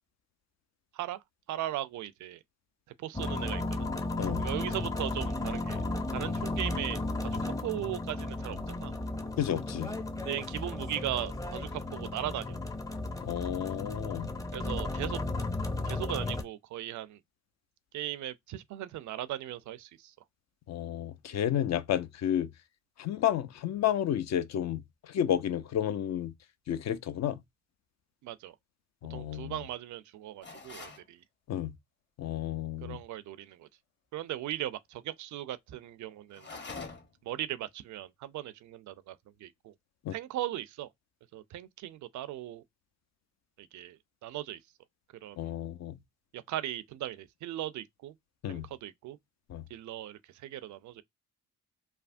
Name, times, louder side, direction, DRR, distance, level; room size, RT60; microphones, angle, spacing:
voice 1, 1.5-2.4 3.0-3.9 4.4-5.8 6.1-8.9 10.2-12.6 14.5-15.2 15.9-17.2 17.9-20.1 28.2-28.5 29.1-31.2 32.8-33.7 34.1-36.5 37.2-39.7 40.1-40.9 41.3-42.6 43.6-44.6 45.2-45.5 46.3-48.1 48.5-49.2 49.7-51.0, right 13 dB, 55° right, 0.4 m, -38 dB
sound 1, 3.1-16.4, left 2 dB, 10° left, 0.6 m, -34 dB
voice 2, 9.4-9.9 13.2-14.3 20.7-22.5 23.0-26.3 26.7-27.4 29.0-29.6 31.5-31.7 32.2-33.0 40.0-40.1 45.4-46.0 48.4-48.7 49.5-49.6, left 10 dB, 50° left, 0.5 m, -31 dB
sound 2, 30.4-31.1 36.3-37.2, left 4 dB, 30° left, 1.0 m, -44 dB
3.3 x 2.1 x 2.5 m
hypercardioid pair, 45°, 36 cm